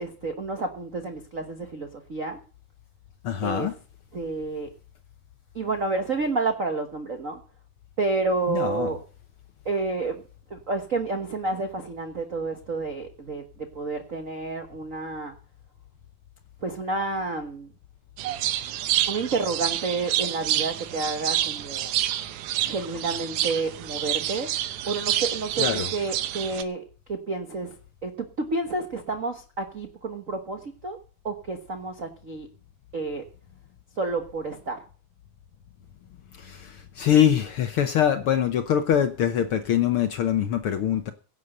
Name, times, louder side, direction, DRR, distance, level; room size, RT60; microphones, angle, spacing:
voice 1, 0.0-2.4 3.4-3.7 4.1-4.7 5.5-7.4 8.0-9.0 9.6-10.2 10.5-15.3 16.6-17.7 19.1-21.9 22.6-24.5 24.9-27.7 28.0-31.0 31.2-32.5 32.9-33.2 34.0-34.8, right 3 dB, 65° right, 5 dB, 0.8 m, -30 dB
voice 2, 3.2-3.7 8.5-8.9 25.6-25.9 36.4-41.1, left 9 dB, 70° left, 8 dB, 1.3 m, -23 dB
sound 1, 18.2-26.6, right 12 dB, 80° right, 2.3 m, -28 dB
16.5 x 8.3 x 6.6 m, 0.39 s
omnidirectional pair, 3.6 m